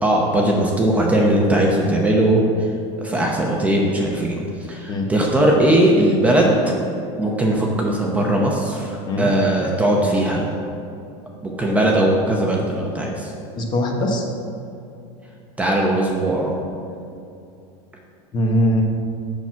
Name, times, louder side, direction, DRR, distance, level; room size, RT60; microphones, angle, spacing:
voice 1, 0.0-2.7 3.0-4.4 4.7-6.6 7.2-10.5 11.4-13.3 15.6-16.6, right 1 dB, 10° right, -2 dB, 0.8 m, -19 dB
voice 2, 13.5-14.2 18.3-18.8, left 1 dB, 30° left, 2 dB, 1.2 m, -20 dB
7.1 x 6.0 x 7.1 m, 2.6 s
supercardioid pair, 150°, 15 cm